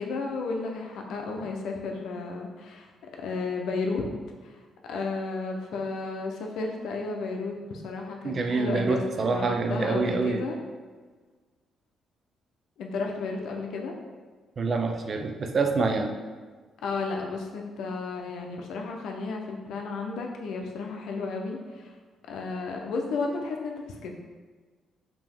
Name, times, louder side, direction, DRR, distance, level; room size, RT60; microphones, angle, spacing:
voice 1, 0.0-4.1 4.4-10.6 12.8-13.9 16.8-21.9 22.3-24.1, left 3 dB, 75° left, 1 dB, 0.6 m, -33 dB
voice 2, 8.2-10.4 14.6-16.1, right 3 dB, 45° right, 4 dB, 0.5 m, -26 dB
5.2 x 2.9 x 3.6 m, 1.4 s
cardioid pair, 90°, 0 cm